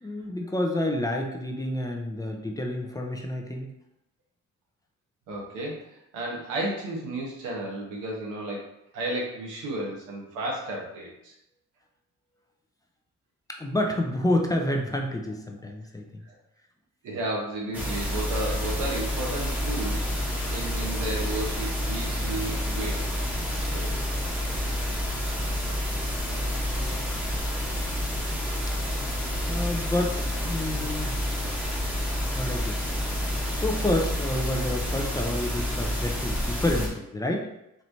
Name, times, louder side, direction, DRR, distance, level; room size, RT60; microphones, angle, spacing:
voice 1, 0.0-3.7 13.5-16.2 28.7-28.8 29.4-31.1 32.3-32.8 33.2-37.5, left 1 dB, 10° left, 1 dB, 0.5 m, -29 dB
voice 2, 5.3-11.3 16.2-16.4 17.0-20.1 20.5-23.0 23.7-23.9 29.7-29.9 30.9-31.0, right 2 dB, 90° right, -2 dB, 1.2 m, -33 dB
sound 1, 17.7-36.9, equal, 5° right, 1.0 m, -29 dB
4.4 x 3.0 x 2.7 m, 0.83 s
cardioid pair, 90°, 30 cm